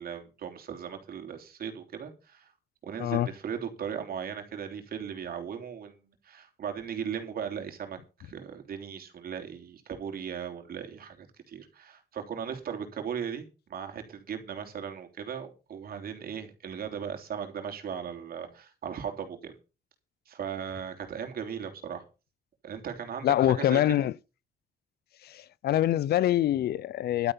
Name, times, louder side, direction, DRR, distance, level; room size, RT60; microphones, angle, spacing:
voice 1, 0.0-2.5 2.8-19.5 20.3-22.0 22.6-24.1, right 7 dB, 65° right, 3.3 m, -37 dB
voice 2, 23.2-24.1 25.2-27.3, left 12 dB, 75° left, 0.5 m, -25 dB
12.0 x 9.1 x 5.6 m
cardioid pair, 90°, 17 cm